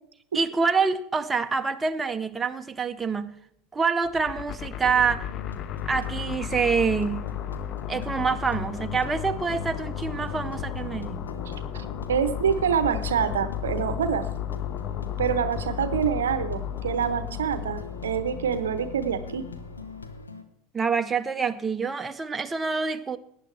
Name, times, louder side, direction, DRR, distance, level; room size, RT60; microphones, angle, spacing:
voice 1, 0.3-3.4 3.7-5.3 5.9-7.3 7.9-11.3 20.7-23.2, right 5 dB, 20° right, 0.7 m, -26 dB
sound 1, 4.0-20.2, left 10 dB, 45° left, 0.6 m, -34 dB
sound 2, 4.8-20.4, left 2 dB, 90° left, 1.0 m, -42 dB
voice 2, 11.5-14.3 15.2-19.5, right 8 dB, 75° right, 0.7 m, -26 dB
17.5 x 10.0 x 3.3 m
figure-of-eight pair, 75°, 0 cm